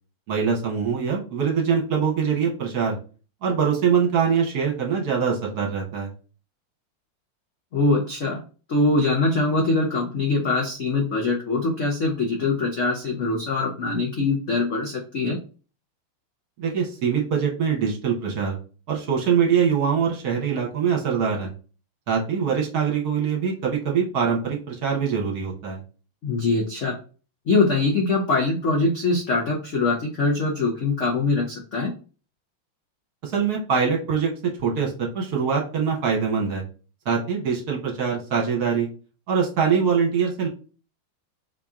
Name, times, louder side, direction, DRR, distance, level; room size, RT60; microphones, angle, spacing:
voice 1, 0.3-3.0 3.4-6.1 16.6-18.6 18.9-21.5 22.1-25.8 33.2-34.3 34.6-36.6 37.0-38.9 39.3-40.5, right 6 dB, 55° right, 0 dB, 1.4 m, -23 dB
voice 2, 7.7-8.4 8.7-15.4 26.2-27.0 27.5-31.9, left 3 dB, 65° left, 0 dB, 0.7 m, -23 dB
5.0 x 2.9 x 3.6 m, 0.36 s
omnidirectional pair, 2.3 m